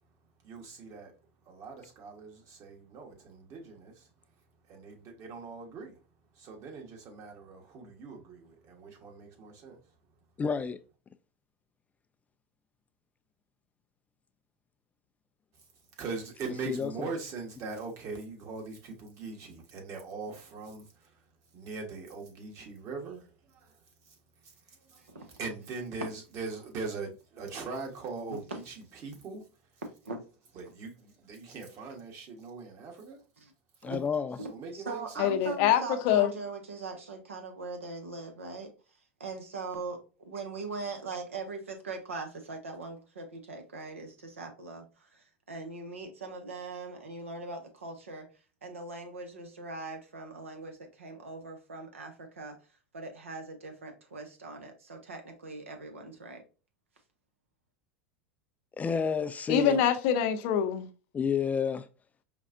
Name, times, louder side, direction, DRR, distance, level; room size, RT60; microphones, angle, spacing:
voice 1, 0.4-1.1 1.5-4.0 4.7-6.0 6.4-9.8 16.0-20.9 21.5-23.7 24.9-25.0 25.4-28.7 29.0-29.4 30.6-33.2 34.5-35.3, right 4 dB, 45° right, 1.3 m, -41 dB
voice 2, 10.4-10.8 16.4-17.1 33.8-34.4 58.8-59.8 61.1-61.9, left 6 dB, 20° left, 0.3 m, -30 dB
voice 3, 34.4-38.7 39.2-48.3 48.6-52.6 52.9-56.4, right 3 dB, 90° right, 1.0 m, -41 dB
voice 4, 35.2-36.3 59.5-60.9, left 9 dB, 60° left, 0.7 m, -25 dB
5.1 x 2.4 x 2.6 m
hypercardioid pair, 90°, 7 cm